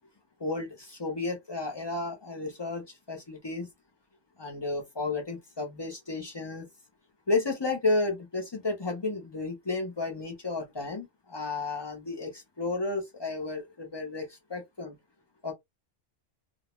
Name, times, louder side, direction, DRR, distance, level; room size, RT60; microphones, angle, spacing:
voice 1, 0.4-3.7 4.4-6.7 7.3-14.9 15.4-15.5, left 3 dB, 35° left, 0.5 m, -32 dB
2.2 x 2.1 x 2.9 m
omnidirectional pair, 1.2 m